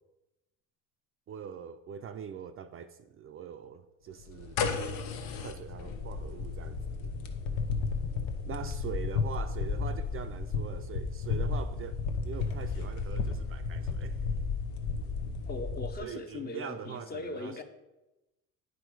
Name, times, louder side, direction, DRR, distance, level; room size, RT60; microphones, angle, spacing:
voice 1, 1.3-5.1 5.4-7.1 8.5-12.0 12.3-14.2 16.0-17.6, right 8 dB, 40° right, 0.4 m, -43 dB
sound 1, 4.2-16.0, left 4 dB, 85° left, 0.9 m, -33 dB
voice 2, 15.5-17.6, left 2 dB, 30° left, 0.8 m, -39 dB
9.0 x 4.7 x 4.6 m
cardioid pair, 115°, 34 cm